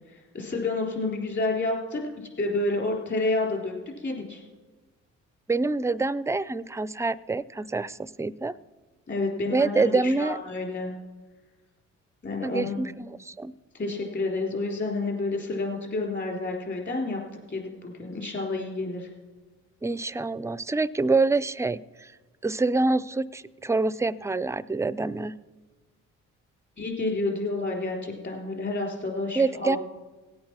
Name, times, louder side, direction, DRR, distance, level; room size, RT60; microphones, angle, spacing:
voice 1, 0.1-2.0 2.4-4.4 9.1-10.9 12.2-12.9 13.7-17.2 17.5-19.1 26.8-29.8, left 2 dB, 35° left, 1 dB, 3.6 m, -29 dB
voice 2, 5.5-8.5 9.5-10.4 12.4-13.5 19.8-21.8 22.4-25.3 29.4-29.8, right 3 dB, 10° right, 17 dB, 0.3 m, -26 dB
17.0 x 8.6 x 5.9 m, 1.3 s
cardioid pair, 90°, 30 cm